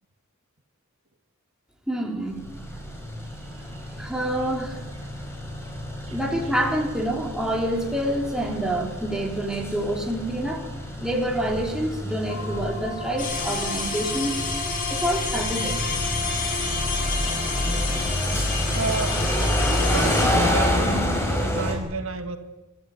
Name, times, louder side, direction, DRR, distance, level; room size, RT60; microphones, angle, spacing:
voice 1, 1.9-2.4 4.0-4.8 6.1-10.6 11.0-14.4 14.9-15.8, right 1 dB, 5° right, 0 dB, 3.9 m, -27 dB
sound 1, 2.3-21.7, left 1 dB, 15° left, 5.1 m, -28 dB
voice 2, 3.3-3.9 6.0-6.2 18.7-19.2 19.9-22.4, right 4 dB, 75° right, 6 dB, 2.0 m, -31 dB
sound 2, 12.3-18.1, left 3 dB, 85° left, 5.4 m, -36 dB
sound 3, 13.2-20.2, left 4 dB, 45° left, 6.3 m, -29 dB
26.5 x 14.0 x 9.6 m, 1.1 s
head